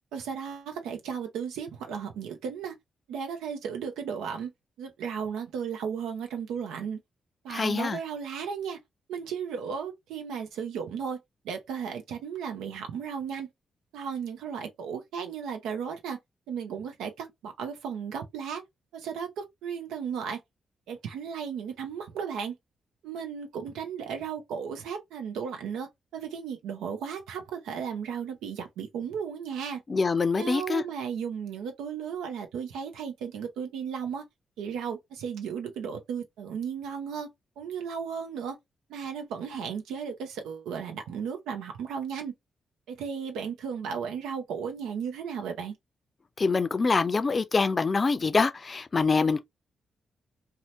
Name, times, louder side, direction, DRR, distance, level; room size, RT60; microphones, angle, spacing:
voice 1, 0.1-2.7 3.1-4.5 4.8-7.0 7.4-8.8 9.1-11.2 11.4-13.5 13.9-16.2 16.5-18.6 18.9-20.4 20.9-22.5 23.0-29.8 30.4-34.2 34.6-37.3 37.6-38.6 38.9-42.3 42.9-45.7, right 7 dB, 85° right, 0.5 m, -35 dB
voice 2, 7.5-8.0 29.9-30.8 46.4-49.4, left 4 dB, 40° left, 0.5 m, -25 dB
2.7 x 2.1 x 3.0 m
supercardioid pair, 50°, 0 cm